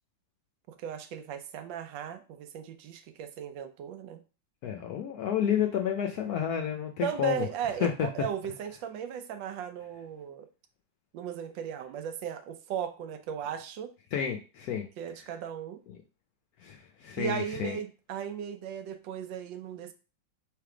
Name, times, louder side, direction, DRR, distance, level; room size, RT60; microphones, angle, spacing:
voice 1, 0.7-4.2 7.0-10.5 11.1-13.9 15.0-15.8 17.2-19.9, right 8 dB, 75° right, 9 dB, 1.2 m, -36 dB
voice 2, 4.6-7.5 7.8-8.1 14.1-14.9 16.6-17.8, left 9 dB, 70° left, 3 dB, 0.9 m, -30 dB
3.4 x 3.3 x 4.8 m, 0.33 s
omnidirectional pair, 2.1 m